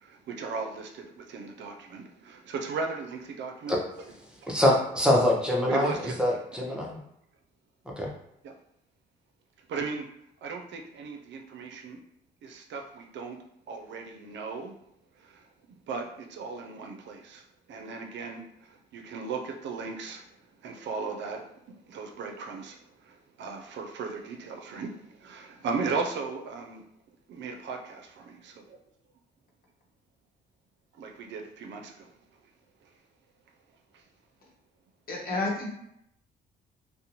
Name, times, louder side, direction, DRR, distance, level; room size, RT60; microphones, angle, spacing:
voice 1, 0.0-3.8 4.4-4.5 5.7-6.6 8.4-8.5 9.7-10.1 10.4-12.0 12.4-13.4 13.7-14.7 15.2-20.2 20.6-21.6 21.9-26.8 27.3-28.8 31.0-32.1 32.8-32.9 33.9-34.0, right 4 dB, 65° right, 3 dB, 0.4 m, -37 dB
voice 2, 4.5-5.9 6.2-7.0 8.0-8.1, left 1 dB, 5° right, -3 dB, 0.6 m, -24 dB
voice 3, 35.1-35.7, left 2 dB, 50° left, -3 dB, 1.0 m, -30 dB
2.5 x 2.1 x 2.8 m, 0.76 s
cardioid pair, 90°, 20 cm